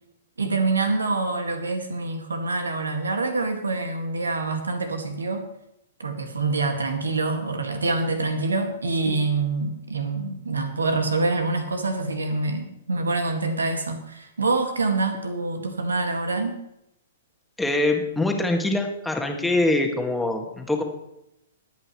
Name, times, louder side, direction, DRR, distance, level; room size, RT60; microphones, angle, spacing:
voice 1, 0.4-5.4 6.0-16.5, right 3 dB, 75° right, 6 dB, 2.0 m, -26 dB
voice 2, 17.6-20.8, left 2 dB, 5° left, 3 dB, 1.9 m, -24 dB
22.0 x 8.7 x 3.2 m, 0.82 s
figure-of-eight pair, 110°, 0 cm